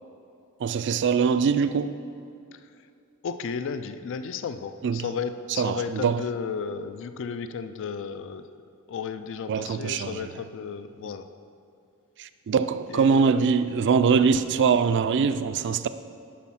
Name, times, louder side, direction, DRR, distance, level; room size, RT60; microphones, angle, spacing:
voice 1, 0.6-2.0 4.8-5.0 5.6-6.2 9.5-10.3 11.0-11.1 12.2-15.9, right 6 dB, 55° right, 12 dB, 0.4 m, -23 dB
voice 2, 3.2-8.4 8.9-11.3 12.9-13.4, left 6 dB, 60° left, 11 dB, 0.4 m, -34 dB
8.5 x 6.1 x 5.7 m, 2.5 s
head